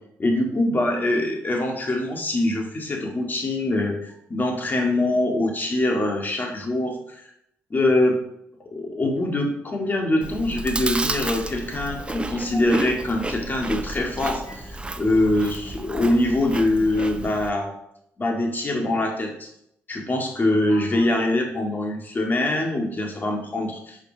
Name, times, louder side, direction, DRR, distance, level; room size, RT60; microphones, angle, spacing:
voice 1, 0.2-6.9 7.7-8.2 8.7-17.7 18.2-19.5 19.9-24.0, left 1 dB, 35° left, 2 dB, 1.9 m, -23 dB
Chewing mastication, 10.2-17.5, right 2 dB, 20° right, 0.6 m, -32 dB
5.3 x 5.1 x 5.1 m, 0.75 s
supercardioid pair, 60°, 6 cm